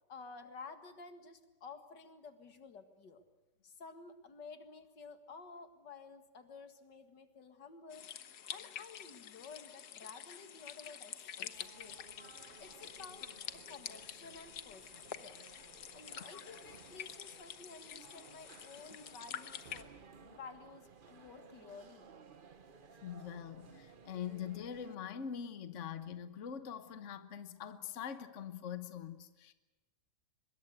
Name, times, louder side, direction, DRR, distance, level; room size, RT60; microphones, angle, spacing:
voice 1, 0.1-3.2 3.6-8.1 8.5-12.0 12.6-14.8 15.2-15.4 15.9-22.1, left 4 dB, 85° left, 8 dB, 2.5 m, -53 dB
sound 1, 7.9-19.8, left 9 dB, 70° left, 1.6 m, -48 dB
sound 2, 11.3-25.0, right 5 dB, 35° right, 1.0 m, -58 dB
voice 2, 23.0-29.5, left 8 dB, 50° left, 11 dB, 1.4 m, -43 dB
24.5 x 21.5 x 8.0 m, 1.1 s
omnidirectional pair, 1.8 m